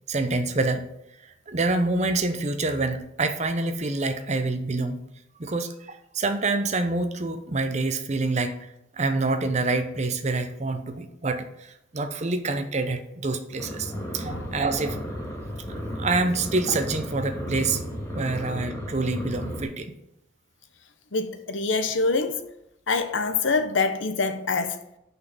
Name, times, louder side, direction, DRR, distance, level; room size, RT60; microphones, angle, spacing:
voice 1, 0.1-0.9 1.5-5.0 5.4-15.0 16.0-17.8 18.1-19.9, right 3 dB, 35° right, 0.7 m, -27 dB
sound 1, 13.6-19.6, equal, 15° left, 1.9 m, -34 dB
voice 2, 21.1-22.4 22.9-24.8, left 4 dB, 85° left, 0.9 m, -25 dB
6.2 x 5.5 x 7.1 m
head